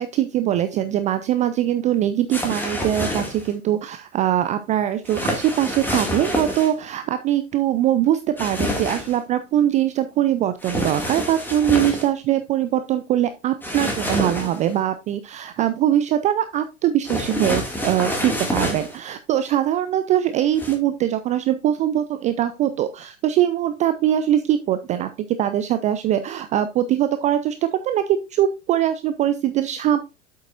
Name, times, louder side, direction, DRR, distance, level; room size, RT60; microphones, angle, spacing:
voice 1, 0.0-25.1 25.4-30.0, right 11 dB, 20° right, 11 dB, 0.4 m, -22 dB
sound 1, 2.3-3.5 5.1-6.7 8.4-9.2 10.6-12.1 13.6-14.7 17.1-19.0 20.5-20.7, left 1 dB, 5° left, 2.2 m, -27 dB
8.1 x 7.5 x 2.5 m, 0.27 s
figure-of-eight pair, 90°, 37 cm